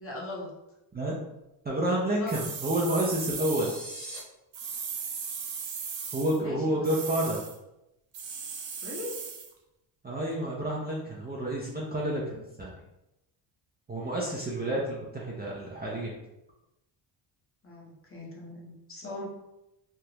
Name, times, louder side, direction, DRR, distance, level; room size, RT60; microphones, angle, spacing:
voice 1, 0.0-0.5 2.2-2.4 6.4-6.8 8.8-9.2 17.6-19.3, left 2 dB, 30° left, -3 dB, 0.9 m, -39 dB
voice 2, 1.6-3.7 6.1-7.4 10.0-12.7 13.9-16.1, right 1 dB, 20° right, -4 dB, 0.5 m, -29 dB
sound 1, 2.3-3.8 4.5-6.4 6.8-7.6 8.1-9.5, right 6 dB, 65° right, 0.7 m, -37 dB
sound 2, 3.2-4.2, right 2 dB, ahead, 1.0 m, -41 dB
3.4 x 2.4 x 2.8 m, 0.90 s
cardioid pair, 105°, 48 cm